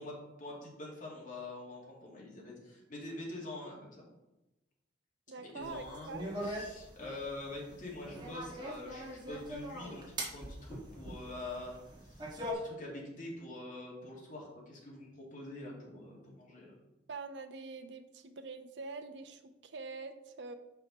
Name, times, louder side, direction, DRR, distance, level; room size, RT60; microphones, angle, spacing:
voice 1, 0.0-4.0 5.4-6.1 6.4-16.7, left 2 dB, 45° left, -3 dB, 2.2 m, -45 dB
voice 2, 5.3-6.3 17.1-20.5, right 4 dB, 75° right, 7 dB, 0.7 m, -45 dB
sound 1, 5.6-12.5, equal, 25° right, 1.5 m, -42 dB
6.6 x 5.7 x 4.1 m, 0.98 s
head